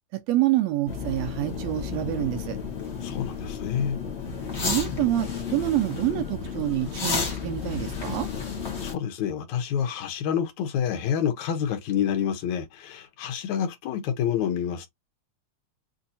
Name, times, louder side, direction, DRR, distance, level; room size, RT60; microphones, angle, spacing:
voice 1, 0.1-2.6 4.6-8.3, right 14 dB, 80° right, 1.6 m, -27 dB
sound 1, 0.9-8.9, left 5 dB, 55° left, 0.7 m, -32 dB
voice 2, 3.0-4.0 8.8-14.9, left 8 dB, 80° left, 2.3 m, -28 dB
6.9 x 2.7 x 2.6 m
omnidirectional pair, 3.3 m